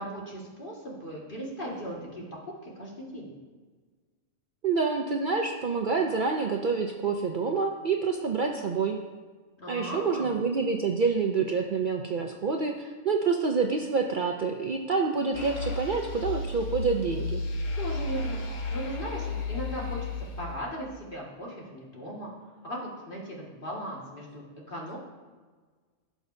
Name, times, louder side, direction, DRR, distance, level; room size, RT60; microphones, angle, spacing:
voice 1, 0.0-3.3 9.6-10.3 17.8-18.4 18.7-22.3 22.6-25.0, equal, 45° left, -4 dB, 2.2 m, -38 dB
voice 2, 4.6-9.0 9.7-17.4, right 4 dB, 50° right, 2 dB, 0.7 m, -27 dB
sound 1, 15.3-20.8, left 3 dB, 85° left, 1.3 m, -33 dB
16.5 x 6.2 x 2.7 m, 1.4 s
omnidirectional pair, 1.3 m